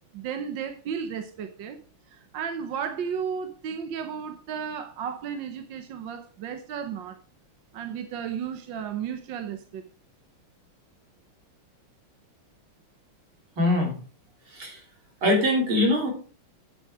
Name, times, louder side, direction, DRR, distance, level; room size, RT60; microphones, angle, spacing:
voice 1, 0.1-1.8 2.1-7.2 7.7-9.8, right 7 dB, 70° right, 7 dB, 1.6 m, -34 dB
voice 2, 13.6-14.0 14.5-14.8 15.2-16.1, left 1 dB, 85° right, 0 dB, 4.2 m, -22 dB
9.3 x 8.2 x 4.8 m, 0.39 s
omnidirectional pair, 2.2 m